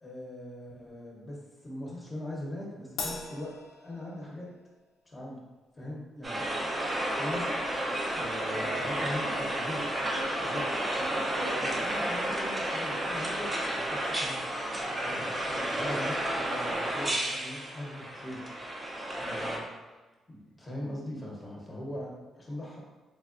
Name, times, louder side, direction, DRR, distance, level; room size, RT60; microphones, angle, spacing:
voice 1, 0.0-1.4 1.6-3.5 3.8-4.5 5.1-5.4 5.7-6.5 7.2-7.4 8.1-9.9 10.4-10.6 11.5-14.4 14.7-18.4 19.1-19.6 20.3-22.8, left 1 dB, 20° left, -3 dB, 0.8 m, -40 dB
Crash cymbal, 3.0-4.6, left 4 dB, 75° left, 0.5 m, -39 dB
sound 1, 6.2-19.6, right 1 dB, 20° right, 0.6 m, -32 dB
voice 2, 8.6-9.4 9.9-10.7 11.0-11.6, right 2 dB, 80° right, -5 dB, 1.3 m, -41 dB
3.4 x 3.3 x 2.4 m, 1.2 s
cardioid pair, 135°, 0 cm